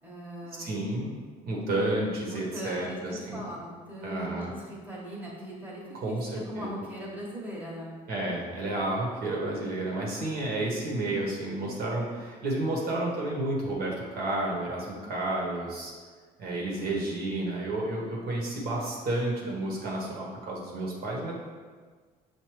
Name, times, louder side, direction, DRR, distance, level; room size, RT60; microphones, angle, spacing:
voice 1, 0.0-0.7 2.3-8.0, right 1 dB, 10° right, -5 dB, 1.1 m, -40 dB
voice 2, 0.6-1.1 1.5-3.4 4.0-4.5 6.0-6.8 8.1-15.9 16.4-21.3, right 2 dB, 65° right, -3 dB, 1.1 m, -31 dB
6.0 x 2.6 x 3.1 m, 1.5 s
cardioid pair, 110°, 17 cm